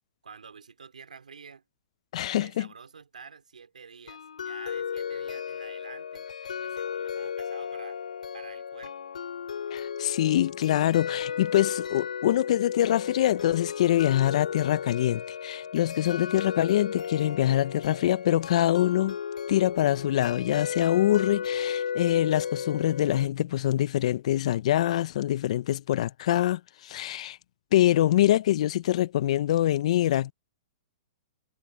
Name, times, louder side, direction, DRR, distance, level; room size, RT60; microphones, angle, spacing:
voice 1, 0.2-1.6 2.3-6.3 6.6-8.0 8.3-9.1, right 5 dB, 85° right, 4.5 m, -48 dB
voice 2, 2.1-2.7 9.7-19.2 19.5-27.4 27.7-30.3, left 13 dB, 60° left, 0.8 m, -24 dB
sound 1, 4.1-23.3, left 7 dB, 80° left, 3.5 m, -34 dB
hypercardioid pair, 125°, 4 cm